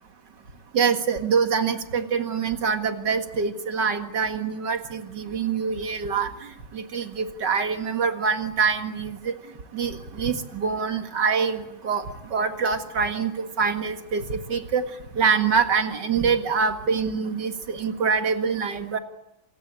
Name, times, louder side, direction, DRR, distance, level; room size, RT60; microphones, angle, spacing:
voice 1, 0.7-6.3 6.7-9.4 9.7-12.0 12.3-14.8 15.1-19.0, right 5 dB, 55° right, 7 dB, 2.4 m, -25 dB
27.5 x 18.0 x 8.8 m, 0.87 s
omnidirectional pair, 2.4 m